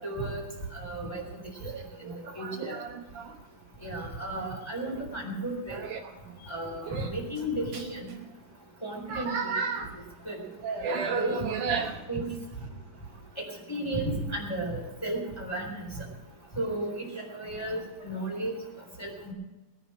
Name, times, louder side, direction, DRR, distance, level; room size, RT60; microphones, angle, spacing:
voice 1, 0.0-0.4 0.7-1.2 2.0-2.7 3.8-5.8 6.4-8.1 8.8-9.3 10.3-10.4 10.9-11.4 11.8-12.2 13.7-16.0 16.5-18.5 19.0-19.3, right 1 dB, 10° left, -1 dB, 3.4 m, -34 dB
voice 2, 1.6-3.4 5.7-6.4 6.8-7.1 7.7-7.8 9.1-9.9 10.6-12.0, right 5 dB, 70° right, 3 dB, 2.4 m, -33 dB
19.5 x 10.0 x 6.2 m, 1.1 s
omnidirectional pair, 4.0 m